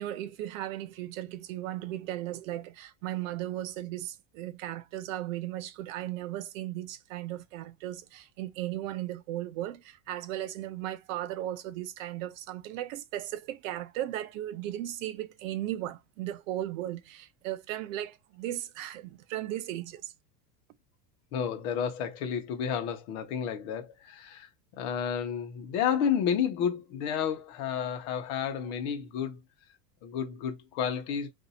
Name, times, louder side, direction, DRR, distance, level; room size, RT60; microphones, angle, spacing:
voice 1, 0.0-20.1, right 13 dB, 55° right, 0.6 m, -36 dB
voice 2, 21.3-24.5 24.8-29.4 30.0-31.3, left 8 dB, 45° left, 0.9 m, -31 dB
2.7 x 2.6 x 4.0 m
supercardioid pair, 170°, 48 cm